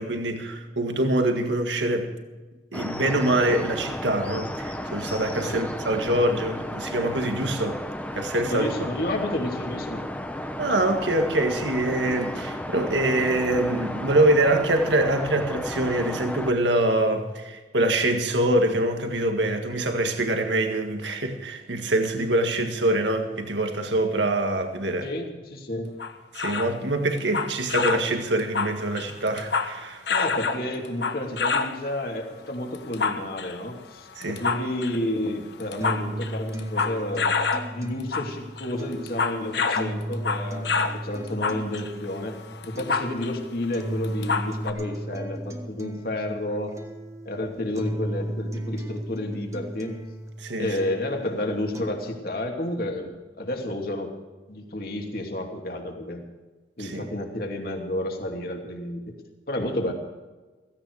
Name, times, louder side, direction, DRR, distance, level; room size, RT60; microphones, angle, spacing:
voice 1, 0.0-2.1 2.7-7.8 8.1-8.7 10.6-25.1 26.3-30.0 34.2-34.4 50.4-50.8 56.8-57.0, right 1 dB, 90° right, 5 dB, 1.8 m, -24 dB
sound 1, 2.7-16.5, left 1 dB, 10° left, 1.0 m, -33 dB
voice 2, 8.5-10.0 25.0-25.9 30.1-37.3 37.7-42.4 42.7-46.7 47.2-49.9 50.6-54.1 54.5-56.2 56.8-59.2 59.5-59.9, left 1 dB, 55° left, 2 dB, 2.8 m, -31 dB
sound 2, 26.0-26.8 27.2-28.1 28.4-29.8 30.1-31.8 32.7-33.6 34.2-35.0 35.5-37.7 38.0-38.3 38.6-41.0 41.3-43.4 43.6-43.7 44.0-44.7, left 4 dB, 75° left, 1.3 m, -27 dB
sound 3, 35.8-51.8, right 1 dB, 15° right, 1.4 m, -35 dB
16.5 x 16.0 x 4.8 m, 1.3 s
head